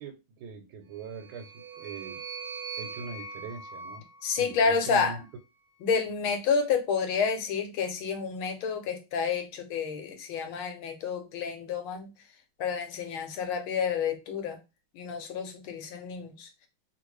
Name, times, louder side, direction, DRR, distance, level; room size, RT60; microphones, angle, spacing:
voice 1, 0.0-2.2 2.8-4.0 4.4-5.2, right 5 dB, 80° right, 1.5 m, -42 dB
sound 1, 1.0-5.4, right 4 dB, 60° right, 1.3 m, -42 dB
voice 2, 4.2-5.2 5.8-12.1 12.6-14.6 14.9-16.5, left 5 dB, 80° left, 1.5 m, -29 dB
3.2 x 2.5 x 3.1 m
omnidirectional pair, 2.3 m